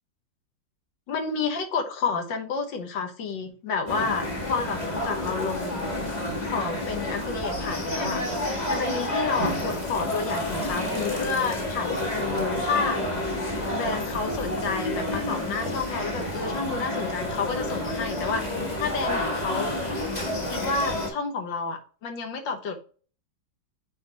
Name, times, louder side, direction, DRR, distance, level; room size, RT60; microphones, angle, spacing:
voice 1, 1.1-5.9 6.5-8.2 8.7-13.0 13.7-18.4 18.8-19.7 20.5-22.8, left 4 dB, 80° left, 5 dB, 1.8 m, -30 dB
sound 1, 3.9-21.1, left 1 dB, 25° left, 1.5 m, -29 dB
8.5 x 3.8 x 2.9 m, 0.40 s
omnidirectional pair, 2.0 m